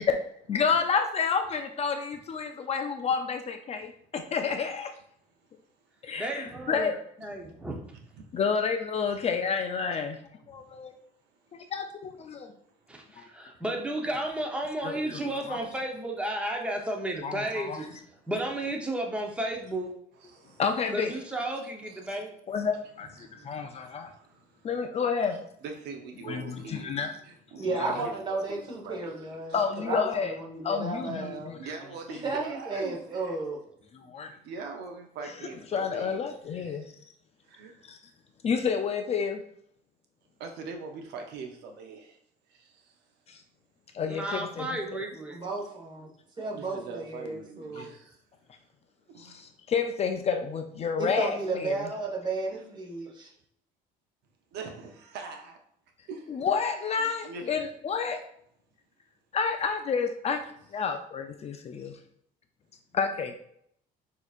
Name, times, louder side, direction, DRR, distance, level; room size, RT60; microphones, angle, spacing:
voice 1, 0.5-4.9 6.0-6.9 8.3-10.2 10.5-10.9 11.5-12.5 14.8-15.2 15.5-15.6 17.2-17.8 20.6-21.2 22.5-24.1 24.6-25.4 26.2-27.1 27.8-28.1 29.5-30.3 30.6-31.7 32.1-32.2 33.9-34.3 35.7-36.9 37.8-38.0 38.4-39.4 43.3-43.4 43.9-45.0 47.8-47.9 49.2-51.9 56.3-58.2 59.3-60.4 60.7-62.0 62.9-63.4, left 6 dB, 40° left, 6 dB, 0.4 m, -30 dB
voice 2, 6.2-6.9 7.2-7.8 12.9-18.0 18.3-19.9 20.9-22.4 44.1-45.4, right 1 dB, 5° right, 1 dB, 0.8 m, -33 dB
voice 3, 10.5-10.9 12.4-12.5 18.1-18.2 20.1-20.6 21.9-22.6 23.2-24.7 25.6-27.0 27.2-29.6 31.6-33.4 34.3-36.9 37.4-37.8 40.4-42.2 42.5-42.9 46.5-48.2 49.1-49.4 54.5-55.6 56.1-56.4 57.0-57.6, right 4 dB, 80° right, 4 dB, 0.7 m, -43 dB
voice 4, 27.6-31.5 32.2-33.6 45.3-46.1 46.4-47.9 51.0-53.3, right 3 dB, 25° right, -2 dB, 1.3 m, -33 dB
6.1 x 2.8 x 2.4 m, 0.69 s
cardioid pair, 110°, 17 cm